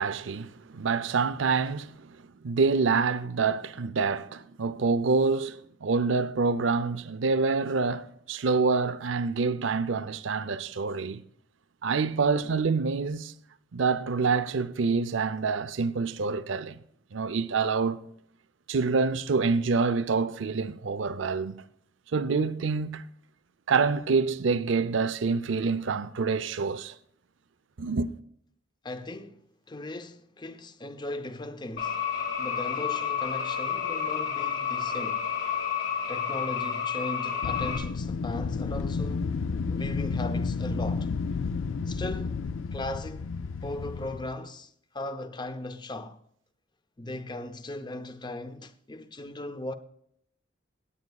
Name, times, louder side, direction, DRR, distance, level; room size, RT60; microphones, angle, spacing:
voice 1, 0.0-2.2 2.4-11.2 11.8-13.3 13.7-16.8 17.1-18.0 18.7-21.6 22.1-23.1 23.7-26.9 27.8-28.1, right 4 dB, 75° right, 0.6 m, -26 dB
voice 2, 28.8-32.0 32.4-35.3 36.1-39.3 39.7-41.1 41.9-42.4 42.7-43.3 43.6-46.2 47.0-49.7, left 1 dB, 25° left, 0.7 m, -38 dB
sound 1, 31.8-37.8, left 7 dB, 65° left, 3.2 m, -30 dB
Wind, 37.4-44.4, left 4 dB, 85° left, 0.4 m, -31 dB
17.0 x 9.4 x 2.3 m
head